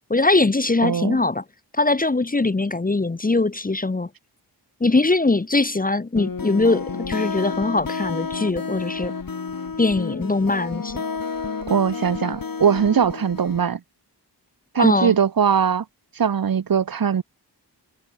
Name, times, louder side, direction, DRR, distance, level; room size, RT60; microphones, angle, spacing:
voice 1, 0.1-1.4 1.7-4.1 4.8-9.1 9.8-11.0 14.8-15.1, left 3 dB, 20° left, 0.8 m, -21 dB
voice 2, 0.8-1.2 11.7-13.8 14.7-15.8 16.2-17.2, right 7 dB, 55° right, 0.9 m, -20 dB
sound 1, 6.2-13.7, left 5 dB, 55° left, 3.2 m, -30 dB
wide cardioid pair, 95°, 41 cm